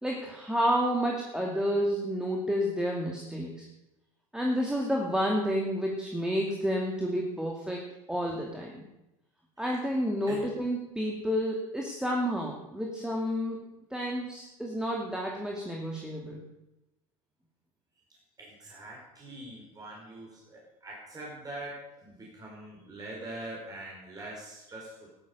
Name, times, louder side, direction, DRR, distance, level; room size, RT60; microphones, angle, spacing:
voice 1, 0.0-3.7 4.3-8.8 9.6-13.6 13.9-16.4, equal, 5° right, -1 dB, 2.5 m, -30 dB
voice 2, 18.4-25.1, right 1 dB, 20° right, -3 dB, 4.8 m, -43 dB
13.0 x 12.5 x 6.9 m, 0.93 s
hypercardioid pair, 90°, 18 cm